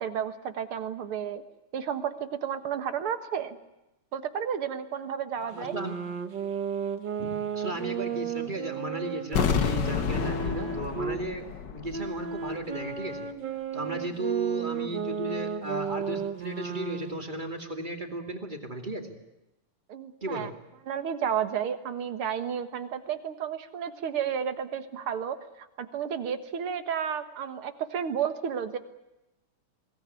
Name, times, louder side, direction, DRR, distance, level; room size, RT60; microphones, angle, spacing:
voice 1, 0.0-1.4 1.7-3.6 4.1-5.7 19.9-20.5 20.9-28.8, right 8 dB, 75° right, 10 dB, 2.4 m, -32 dB
voice 2, 5.3-5.9 7.2-11.4 11.7-13.3 13.7-19.2 20.2-20.5, right 2 dB, 20° right, 4 dB, 2.6 m, -35 dB
sound 1, 5.5-11.2 11.9-17.3, right 6 dB, 55° right, 2.0 m, -34 dB
sound 2, 9.3-12.2 12.5-12.6, left 6 dB, 55° left, 1.9 m, -29 dB
23.0 x 18.0 x 9.7 m, 0.95 s
omnidirectional pair, 2.4 m